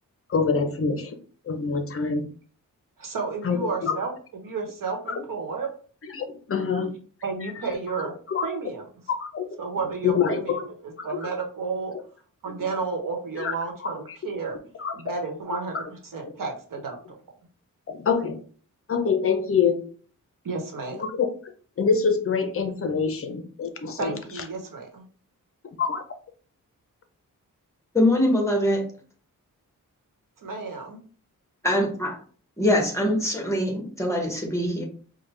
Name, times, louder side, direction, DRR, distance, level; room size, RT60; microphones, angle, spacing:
voice 1, 0.3-1.2 1.4-2.2 3.4-4.0 5.1-5.2 6.0-6.9 7.6-7.7 8.3-8.4 9.2-9.5 10.0-10.6 11.0-11.3 12.6-12.7 13.4-13.5 14.8-14.9 15.7-15.9 16.4-16.5 17.9-18.4 18.9-19.8 20.9-24.4 25.8-26.0, left 5 dB, 40° left, 7 dB, 0.5 m, -26 dB
voice 2, 3.0-4.1 4.4-5.7 7.2-8.1 8.4-8.8 9.6-10.7 11.0-11.9 12.4-14.6 14.9-17.0 20.4-21.0 24.0-25.0 30.4-31.0, right 4 dB, 75° right, 2 dB, 1.0 m, -32 dB
voice 3, 27.9-28.9 31.6-32.2 32.6-34.8, left 1 dB, 10° left, 0 dB, 0.9 m, -23 dB
4.6 x 2.2 x 3.1 m, 0.43 s
wide cardioid pair, 160°, 33 cm